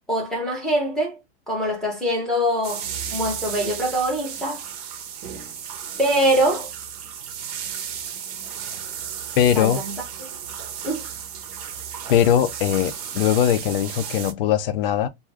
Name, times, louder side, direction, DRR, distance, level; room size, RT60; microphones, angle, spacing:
voice 1, 0.1-1.2 1.5-4.6 6.0-6.7 9.5-10.3 10.8-11.0, right 1 dB, ahead, 0.7 m, -24 dB
sound 1, 2.6-14.3, right 8 dB, 35° right, 0.6 m, -34 dB
voice 2, 9.4-9.8 12.1-15.1, left 10 dB, 55° left, 0.6 m, -20 dB
2.5 x 2.3 x 3.2 m
supercardioid pair, 160°, 33 cm